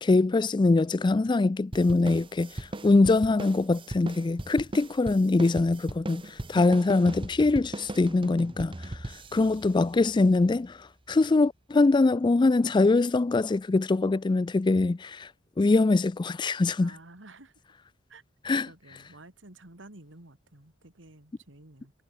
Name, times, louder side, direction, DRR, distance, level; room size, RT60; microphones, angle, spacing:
voice 1, 0.0-6.2 6.5-15.3 15.6-16.9 18.5-18.7, left 3 dB, 25° left, 0.4 m, -23 dB
sound 1, 1.7-10.6, right 1 dB, 30° right, 1.2 m, -39 dB
voice 2, 6.1-6.5 9.2-9.4 16.8-17.5 18.1-18.2 18.6-21.9, right 2 dB, 75° right, 2.9 m, -51 dB
head